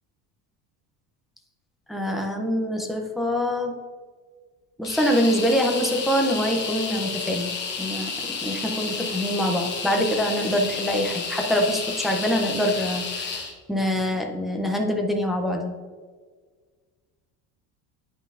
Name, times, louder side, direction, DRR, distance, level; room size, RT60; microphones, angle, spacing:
voice 1, 1.9-3.8 4.8-7.5 7.8-13.4 13.7-15.7, equal, ahead, 1 dB, 0.3 m, -25 dB
sound 1, 4.8-13.5, left 5 dB, 25° left, 0.9 m, -31 dB
9.1 x 5.5 x 2.4 m, 1.5 s
cardioid pair, 175°, 39 cm